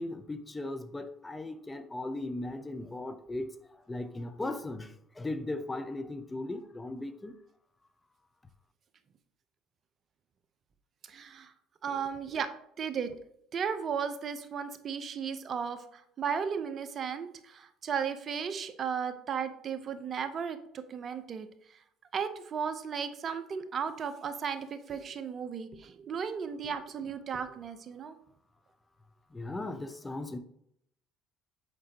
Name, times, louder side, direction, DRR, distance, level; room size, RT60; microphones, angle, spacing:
voice 1, 0.0-3.5 3.9-7.3 29.3-30.4, left 2 dB, 15° left, 0.7 m, -37 dB
voice 2, 11.1-11.5 11.8-12.5 12.8-13.2 13.5-21.5 22.1-28.2, right 6 dB, 45° right, 0.7 m, -35 dB
6.7 x 4.9 x 2.9 m
supercardioid pair, 80°, 0 cm